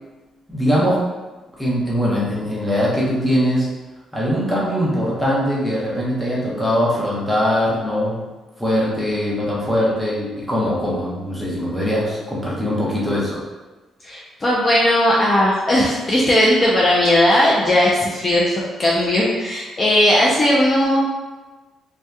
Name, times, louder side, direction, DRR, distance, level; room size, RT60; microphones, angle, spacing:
voice 1, 0.5-1.0 1.6-3.7 4.1-8.2 8.6-13.4, equal, ahead, -6 dB, 0.8 m, -21 dB
voice 2, 14.0-21.2, left 1 dB, 30° left, -5 dB, 0.4 m, -17 dB
2.7 x 2.2 x 2.2 m, 1.2 s
cardioid pair, 90°, 0 cm